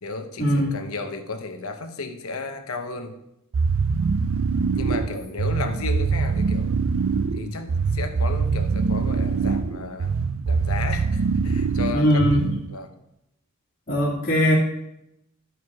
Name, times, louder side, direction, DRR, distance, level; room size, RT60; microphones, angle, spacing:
voice 1, 0.0-3.1 4.7-6.7 7.3-10.1 10.5-12.9, left 3 dB, 75° left, 6 dB, 1.0 m, -33 dB
sound 1, 3.5-12.8, right 5 dB, 60° right, 0.4 m, -24 dB
voice 2, 11.9-12.5 13.9-14.5, equal, 40° left, -8 dB, 2.0 m, -20 dB
13.0 x 4.7 x 4.8 m, 0.83 s
head